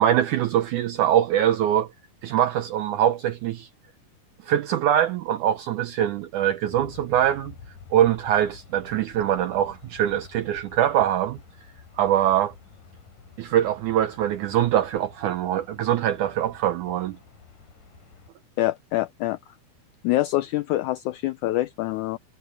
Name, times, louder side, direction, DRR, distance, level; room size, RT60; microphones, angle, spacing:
voice 1, 0.0-1.9 2.2-3.7 4.4-7.5 7.9-11.4 12.0-12.5 13.4-17.2, right 11 dB, 75° right, 2.0 m, -23 dB
Aircraft, 6.7-18.3, left 5 dB, 65° left, 4.9 m, -49 dB
voice 2, 18.6-19.4 20.0-22.2, left 16 dB, 85° left, 1.7 m, -25 dB
omnidirectional pair, 4.1 m